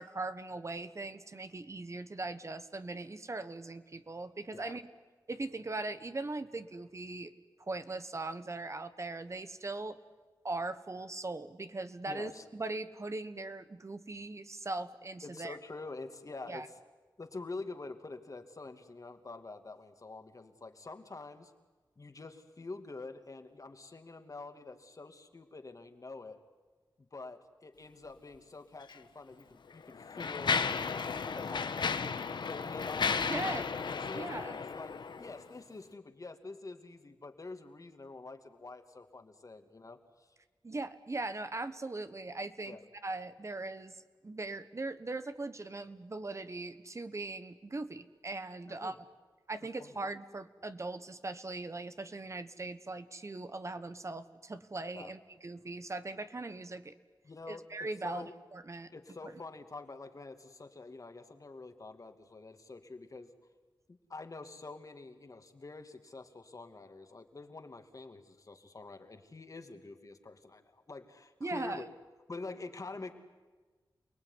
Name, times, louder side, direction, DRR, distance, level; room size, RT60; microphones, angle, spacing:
voice 1, 0.0-4.8 5.3-7.3 7.6-10.0 10.4-15.6 16.5-16.7 33.3-33.7 34.1-34.6 40.6-42.8 43.0-44.0 44.2-48.9 49.5-56.9 57.5-58.9 71.4-71.8, right 2 dB, 40° right, 11 dB, 1.3 m, -40 dB
voice 2, 12.1-12.4 15.2-16.7 17.2-21.5 22.0-26.4 27.0-30.6 31.3-32.0 32.4-40.3 42.7-42.8 48.7-49.0 49.8-49.9 54.9-55.1 57.2-58.3 58.9-63.3 63.9-71.9 72.3-73.1, left 3 dB, 45° left, 7 dB, 2.5 m, -46 dB
Mechanisms, 28.8-29.0 29.7-35.4, left 5 dB, 75° left, 1.2 m, -34 dB
28.5 x 19.5 x 9.9 m, 1.3 s
cardioid pair, 65°, 8 cm